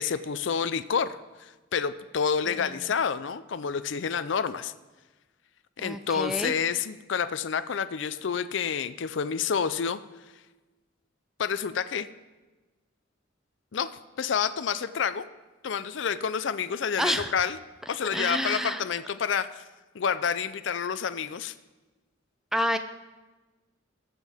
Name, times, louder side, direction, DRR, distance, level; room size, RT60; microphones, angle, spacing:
voice 1, 0.0-4.7 5.8-10.0 11.4-12.1 13.7-13.9 14.2-15.3 15.6-17.6 17.9-19.6 19.9-21.5, left 6 dB, 70° left, 13 dB, 0.5 m, -29 dB
voice 2, 5.8-6.5 17.0-17.5 18.1-18.8 22.5-22.8, equal, ahead, 8 dB, 0.5 m, -29 dB
20.0 x 7.4 x 3.5 m, 1.2 s
head